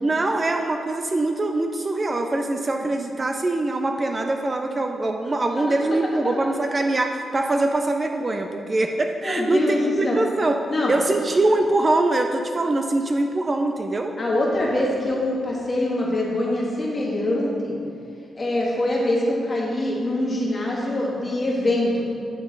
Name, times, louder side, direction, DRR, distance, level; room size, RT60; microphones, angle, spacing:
voice 1, 0.0-10.6 10.9-14.1, right 2 dB, 30° right, 4 dB, 0.4 m, -23 dB
voice 2, 9.2-10.2 10.7-10.9 14.2-17.7 18.3-22.0, left 1 dB, 30° left, -4 dB, 1.5 m, -24 dB
9.2 x 3.7 x 3.9 m, 2.4 s
cardioid pair, 95°, 0 cm